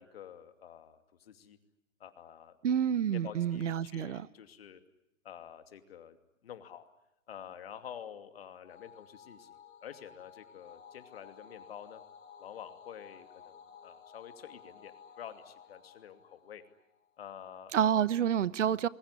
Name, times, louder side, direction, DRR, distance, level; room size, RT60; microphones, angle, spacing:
voice 1, 0.0-1.6 2.0-2.6 3.1-4.8 5.2-6.2 6.4-6.8 7.3-12.0 12.4-16.6 17.2-18.0, left 9 dB, 45° left, 2.7 m, -48 dB
voice 2, 2.6-4.3 17.7-18.9, right 9 dB, 60° right, 1.1 m, -28 dB
sound 1, 8.7-17.3, left 7 dB, 65° left, 6.6 m, -55 dB
26.5 x 22.5 x 9.7 m
hypercardioid pair, 160°, 40 cm